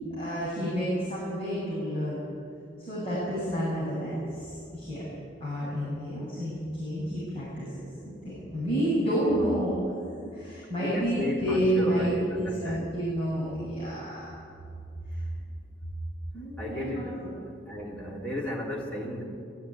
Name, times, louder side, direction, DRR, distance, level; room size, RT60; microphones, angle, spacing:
voice 1, 0.1-2.2 2.9-5.0 5.4-7.7 8.0-9.9 10.3-14.3 15.1-15.2 16.3-17.3, equal, 30° left, -8 dB, 7.5 m, -30 dB
voice 2, 10.8-12.9 16.6-17.2 17.7-19.2, left 1 dB, 5° left, -4 dB, 3.7 m, -34 dB
21.5 x 16.0 x 9.5 m, 2.5 s
head